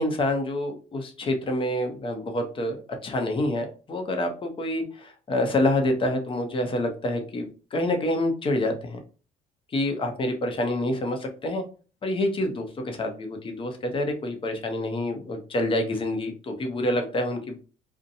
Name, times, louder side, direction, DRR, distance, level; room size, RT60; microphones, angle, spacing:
voice 1, 0.0-9.0 9.7-11.6 12.0-17.6, left 1 dB, 30° left, 4 dB, 0.7 m, -27 dB
2.7 x 2.1 x 2.6 m, 0.36 s
cardioid pair, 110°, 17 cm